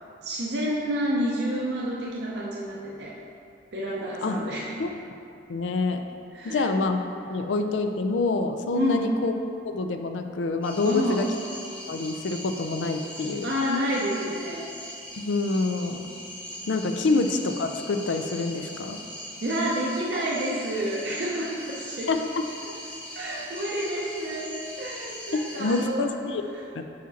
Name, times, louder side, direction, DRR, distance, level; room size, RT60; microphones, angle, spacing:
voice 1, 0.2-3.1 3.7-4.7 6.3-6.7 8.7-9.1 10.8-11.3 13.4-14.7 19.4-22.1 23.1-26.1 26.5-26.6, equal, 60° right, -5 dB, 0.7 m, -29 dB
voice 2, 5.5-6.0 6.4-7.0 7.3-9.3 9.7-11.3 11.9-13.5 15.2-16.1 16.7-19.0 22.1-22.4 25.6-26.4 26.8-26.9, left 3 dB, 85° left, 6 dB, 0.4 m, -26 dB
sound 1, 10.6-25.9, equal, 5° left, 0.6 m, -41 dB
5.7 x 5.0 x 4.1 m, 2.6 s
head